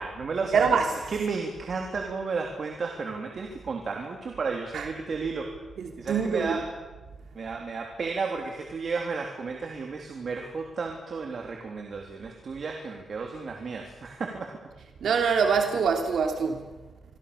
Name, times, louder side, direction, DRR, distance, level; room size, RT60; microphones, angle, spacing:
voice 1, 0.0-5.5 6.0-6.6 7.3-14.5, right 4 dB, 60° right, 2 dB, 3.4 m, -33 dB
voice 2, 0.5-0.9 4.7-4.9 5.8-6.6 15.0-16.6, right 6 dB, 80° right, 4 dB, 3.0 m, -24 dB
27.5 x 22.5 x 7.0 m, 1.2 s
cardioid pair, 80°, 0 cm